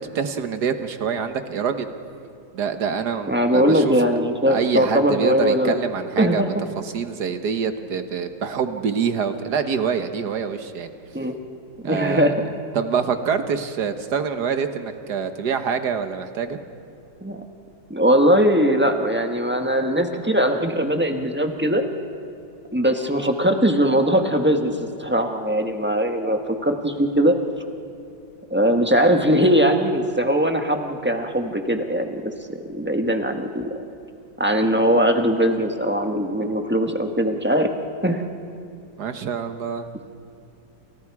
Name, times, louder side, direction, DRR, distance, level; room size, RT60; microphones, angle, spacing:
voice 1, 0.2-1.9 2.5-4.0 4.5-10.9 11.8-12.3 12.7-16.6 39.0-39.9, right 6 dB, 55° right, 8 dB, 1.7 m, -25 dB
voice 2, 3.3-5.7 6.2-6.5 11.1-11.3 11.8-12.4 17.2-17.4 17.9-21.8 22.7-27.4 28.5-32.2 32.7-33.7 34.4-37.7 38.0-38.2, equal, 5° right, 4 dB, 1.1 m, -20 dB
29.5 x 29.0 x 4.9 m, 2.6 s
omnidirectional pair, 2.2 m